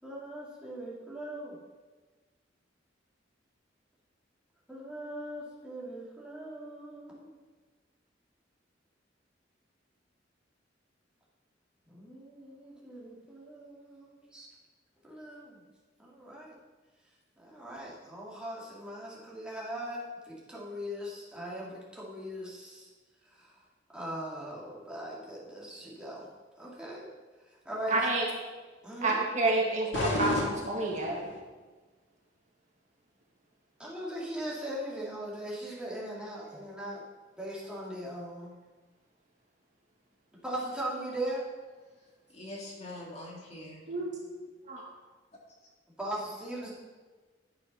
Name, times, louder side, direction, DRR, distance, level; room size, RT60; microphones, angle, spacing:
voice 1, 0.0-1.6 4.7-7.3 11.9-14.5 15.0-15.6 16.0-16.5 17.4-22.9 23.2-23.5 23.9-26.3 26.6-27.1 27.5-28.1 28.8-29.2 33.8-37.0 37.4-38.5 40.4-41.4 46.0-46.7, right 1 dB, 5° right, -6 dB, 2.9 m, -39 dB
voice 2, 27.9-28.2 29.0-31.3 43.9-44.1 44.7-44.8, right 2 dB, 40° right, -1 dB, 1.6 m, -29 dB
sound 1, 29.9-31.4, left 1 dB, 75° left, 2.0 m, -32 dB
voice 3, 42.0-43.9, left 1 dB, 35° left, -2 dB, 2.2 m, -44 dB
11.0 x 6.8 x 5.6 m, 1.3 s
head